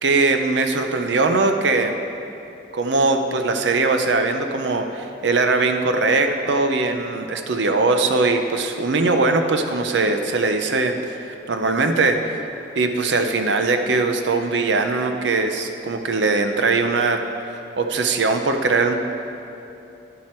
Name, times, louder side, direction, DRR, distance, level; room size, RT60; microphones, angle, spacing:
voice 1, 0.0-1.9 2.7-12.4 12.8-19.0, right 3 dB, 90° right, 6 dB, 0.7 m, -21 dB
12.0 x 7.4 x 4.5 m, 2.9 s
head